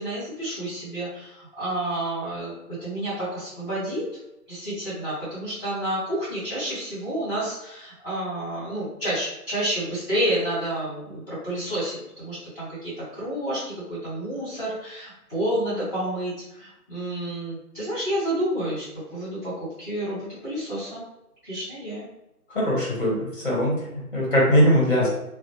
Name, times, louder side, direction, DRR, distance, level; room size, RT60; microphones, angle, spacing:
voice 1, 0.0-4.0 4.5-19.5 19.8-21.0 21.4-22.0, right 1 dB, 10° left, -11 dB, 1.5 m, -30 dB
voice 2, 22.5-25.1, equal, 35° left, -4 dB, 0.9 m, -21 dB
2.5 x 2.1 x 2.9 m, 0.88 s
figure-of-eight pair, 150°, 47 cm